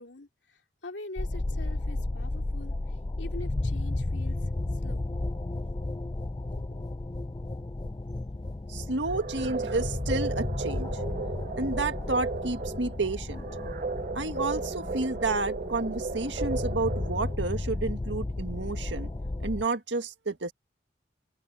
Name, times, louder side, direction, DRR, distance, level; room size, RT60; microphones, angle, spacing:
voice 1, 0.0-4.5 4.8-5.0 6.4-6.8, left 2 dB, 85° left, 2.6 m, -44 dB
sound 1, 1.2-19.7, left 2 dB, 25° left, 0.4 m, -33 dB
voice 2, 8.7-10.9 11.6-13.5 14.2-19.1 19.4-20.5, right 3 dB, 85° right, 1.8 m, -31 dB
sound 2, 9.1-17.5, right 4 dB, 45° right, 0.4 m, -35 dB
head